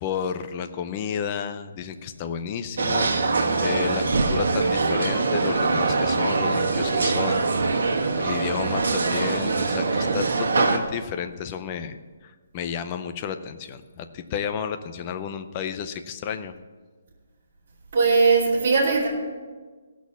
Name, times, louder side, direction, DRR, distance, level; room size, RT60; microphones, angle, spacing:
voice 1, 0.0-3.3 3.6-7.5 8.1-12.0 12.2-16.6, left 7 dB, 20° left, 9 dB, 0.5 m, -31 dB
sound 1, 2.8-10.8, right 4 dB, 65° right, 1.4 m, -23 dB
voice 2, 17.9-19.1, right 4 dB, 35° right, -6 dB, 2.6 m, -19 dB
15.5 x 6.2 x 7.0 m, 1.4 s
hypercardioid pair, 180°, 0 cm